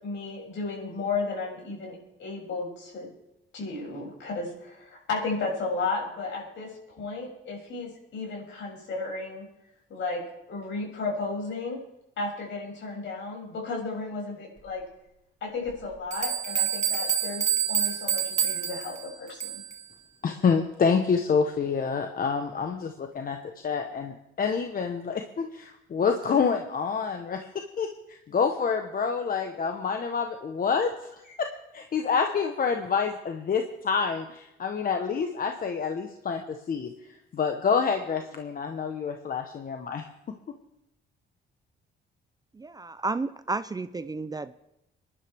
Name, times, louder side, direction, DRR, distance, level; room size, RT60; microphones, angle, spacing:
voice 1, 0.0-3.1 3.5-9.5 9.9-10.2 10.5-11.8 12.2-14.8 15.4-19.6, left 3 dB, 70° left, -2 dB, 6.8 m, -34 dB
sound 1, 15.7-15.8 16.1-19.8, right 8 dB, 35° right, 2.3 m, -28 dB
voice 2, 20.2-23.4 23.6-31.5 31.7-36.9 37.3-40.0, left 5 dB, 45° left, 5 dB, 1.1 m, -27 dB
voice 3, 42.5-44.5, right 3 dB, 20° right, 14 dB, 0.5 m, -32 dB
24.0 x 11.0 x 3.5 m, 0.87 s
cardioid pair, 90°, 20 cm